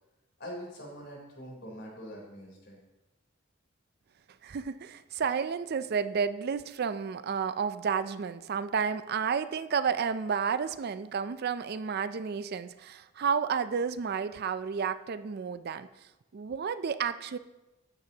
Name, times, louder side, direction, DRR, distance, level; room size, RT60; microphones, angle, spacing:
voice 1, 0.4-2.8, equal, 60° left, -2 dB, 3.6 m, -43 dB
voice 2, 4.4-15.9 16.3-17.4, right 6 dB, 55° right, 13 dB, 0.4 m, -31 dB
13.0 x 9.8 x 2.9 m, 1.0 s
head